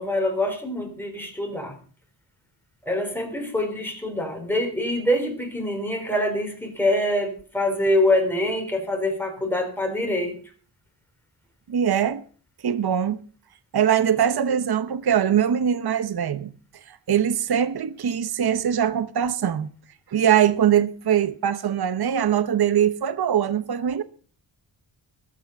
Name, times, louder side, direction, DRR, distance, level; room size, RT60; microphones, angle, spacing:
voice 1, 0.0-1.8 2.8-10.4, left 1 dB, 5° left, 3.8 m, -25 dB
voice 2, 11.7-12.2 12.6-13.2 13.7-16.5 16.9-19.7 20.1-24.0, right 9 dB, 55° right, 0.8 m, -22 dB
21.0 x 8.6 x 5.2 m
wide cardioid pair, 150°, 46 cm